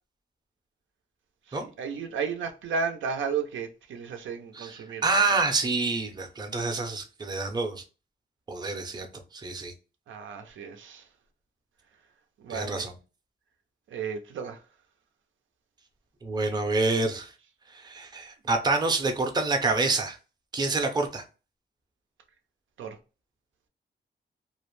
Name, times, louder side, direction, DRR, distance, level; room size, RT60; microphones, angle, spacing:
voice 1, 1.5-5.1 10.1-11.0 12.4-12.9 13.9-14.6 22.8-23.0, right 5 dB, 90° right, 0.5 m, -33 dB
voice 2, 5.0-7.8 8.5-9.1 9.3-9.7 12.5-12.9 16.2-17.3 17.7-20.2 20.5-21.2, right 3 dB, 20° right, 0.5 m, -27 dB
2.4 x 2.1 x 3.0 m
wide cardioid pair, 125°, 19 cm